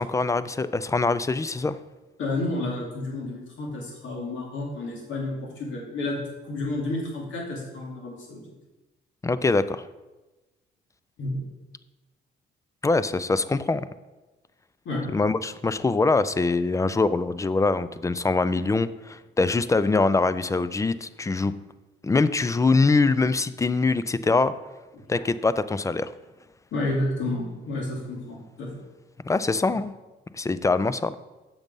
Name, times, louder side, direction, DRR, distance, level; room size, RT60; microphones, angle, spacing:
voice 1, 0.0-1.8 9.2-9.9 12.8-13.9 15.1-21.5 22.0-24.5 25.1-26.1 29.3-29.9 30.3-31.2, left 3 dB, 15° left, 15 dB, 0.3 m, -23 dB
voice 2, 2.2-8.4 11.2-11.4 14.8-15.1 24.9-25.0 26.7-28.7, left 2 dB, 75° left, -2 dB, 2.5 m, -30 dB
7.2 x 5.3 x 5.3 m, 1.1 s
cardioid pair, 90°, 20 cm